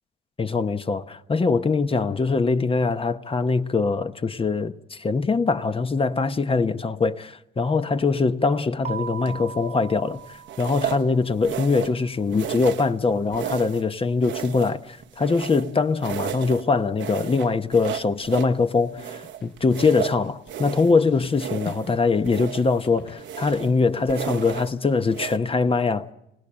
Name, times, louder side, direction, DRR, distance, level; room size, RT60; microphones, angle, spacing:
voice 1, 0.4-10.2 10.6-26.1, left 4 dB, 30° left, 0.9 m, -23 dB
Keyboard (musical), 8.8-11.4, right 7 dB, 35° right, 1.1 m, -38 dB
sound 1, 9.2-9.6 10.5-11.1 11.4-12.0 12.3-13.0 13.3-13.9 14.2-15.7 16.0-16.6 17.0-18.6 19.0-21.0 21.3-21.9 22.2-22.8 23.2-23.7 24.1-24.7 25.1-25.4, right 10 dB, 70° right, 0.9 m, -33 dB
sound 2, 19.2-20.2 20.4-22.1 22.3-23.7, left 5 dB, 70° left, 4.8 m, -41 dB
27.0 x 18.0 x 8.8 m
cardioid pair, 90°, 20 cm